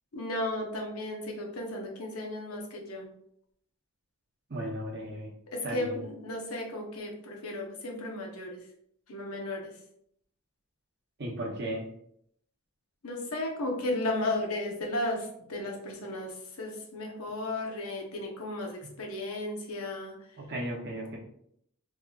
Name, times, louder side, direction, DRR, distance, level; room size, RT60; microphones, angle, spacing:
voice 1, 0.1-3.1 5.5-8.6 9.1-9.7 13.0-20.1, left 1 dB, 85° left, 1 dB, 0.8 m, -34 dB
voice 2, 4.5-5.3 5.6-6.0 11.2-11.8 20.4-21.2, right 1 dB, 50° right, -2 dB, 0.8 m, -35 dB
3.6 x 2.8 x 2.3 m, 0.70 s
head